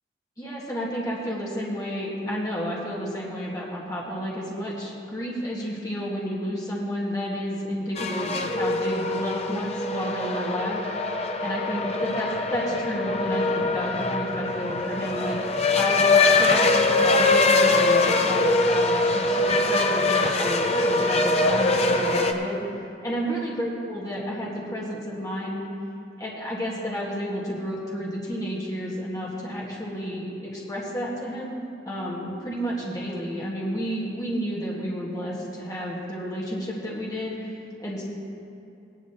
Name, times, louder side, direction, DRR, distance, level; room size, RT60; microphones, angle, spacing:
voice 1, 0.4-10.8 11.4-22.6 23.0-25.6 26.2-38.0, equal, 20° left, -5 dB, 1.7 m, -31 dB
sound 1, 8.0-22.3, left 3 dB, 35° left, 0.7 m, -23 dB
18.5 x 11.0 x 2.9 m, 2.7 s
head